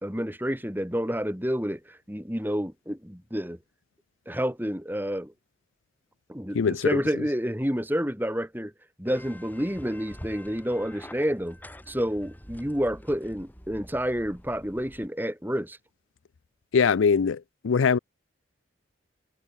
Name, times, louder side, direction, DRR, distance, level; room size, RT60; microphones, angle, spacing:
voice 1, 0.0-3.6 4.3-5.3 6.3-8.7 9.0-11.6 11.9-15.8, equal, 10° right, 3.3 m, -29 dB
voice 2, 6.5-7.0 16.7-18.0, left 6 dB, 85° left, 0.5 m, -22 dB
sound 1, 9.1-15.1, equal, 10° left, 6.1 m, -46 dB
head